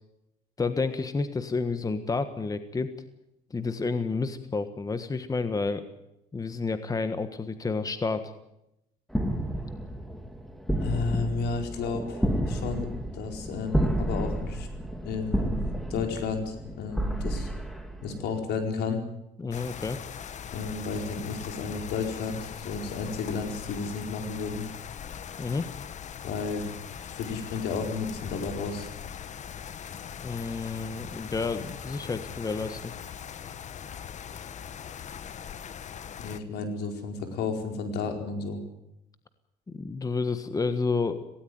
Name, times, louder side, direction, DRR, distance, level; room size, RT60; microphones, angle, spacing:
voice 1, 0.6-2.9 3.5-5.9 6.3-8.3 19.4-20.0 25.4-25.7 30.2-32.9 39.7-41.2, left 4 dB, 20° left, 10 dB, 1.4 m, -30 dB
sound 1, 9.1-18.4, right 1 dB, ahead, 2.6 m, -31 dB
voice 2, 10.8-15.6 15.9-17.5 18.0-19.0 20.5-24.6 26.2-26.6 27.1-28.9 36.2-38.6, left 4 dB, 80° left, 4 dB, 4.6 m, -32 dB
sound 2, 19.5-36.4, left 8 dB, 45° left, 1.2 m, -41 dB
18.5 x 17.5 x 9.4 m, 0.85 s
cardioid pair, 110°, 17 cm